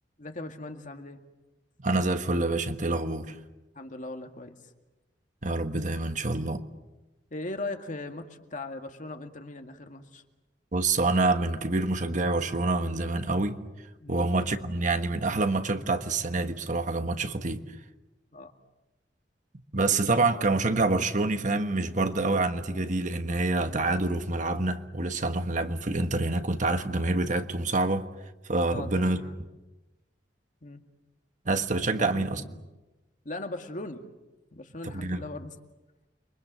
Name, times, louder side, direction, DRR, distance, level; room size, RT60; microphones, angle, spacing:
voice 1, 0.2-1.2 3.8-4.6 7.3-10.2 14.0-14.3 18.3-18.5 28.7-29.4 30.6-30.8 31.9-32.6 33.3-34.0 34.5-35.5, left 2 dB, 45° left, 2.1 m, -39 dB
voice 2, 1.8-3.4 5.4-6.6 10.7-13.6 14.1-17.6 19.7-28.1 28.5-29.2 31.4-32.4 34.8-35.2, right 2 dB, 45° right, 1.4 m, -27 dB
29.5 x 23.5 x 7.6 m
head